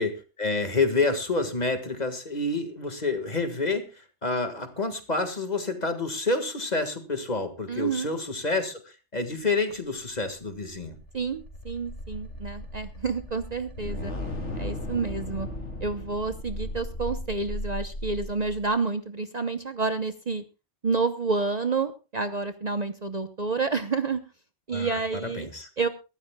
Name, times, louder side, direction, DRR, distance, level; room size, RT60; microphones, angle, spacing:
voice 1, 0.0-3.9 4.2-11.0 24.7-25.7, left 3 dB, 35° left, 8 dB, 1.8 m, -28 dB
voice 2, 7.7-8.1 11.1-14.1 14.6-15.5 15.8-20.4 20.8-24.2 24.7-25.5 25.8-25.9, right 4 dB, 40° right, 9 dB, 0.8 m, -29 dB
sound 1, 10.4-18.6, left 1 dB, 85° left, 3.1 m, -36 dB
23.5 x 12.5 x 2.3 m, 0.30 s
omnidirectional pair, 1.2 m